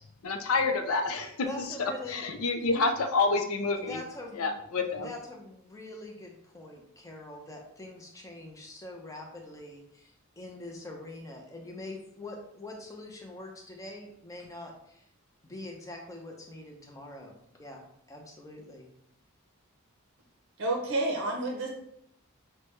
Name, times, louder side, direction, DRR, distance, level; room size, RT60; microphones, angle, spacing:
voice 1, 0.2-1.3 1.8-4.0 4.4-5.1, left 3 dB, 75° left, 6 dB, 0.5 m, -28 dB
voice 2, 1.4-2.3 3.8-4.5 5.0-15.1 15.4-18.9, left 2 dB, 15° left, 1 dB, 0.6 m, -44 dB
voice 3, 20.6-21.7, right 2 dB, 55° right, 0 dB, 0.6 m, -29 dB
6.0 x 2.2 x 3.1 m, 0.75 s
head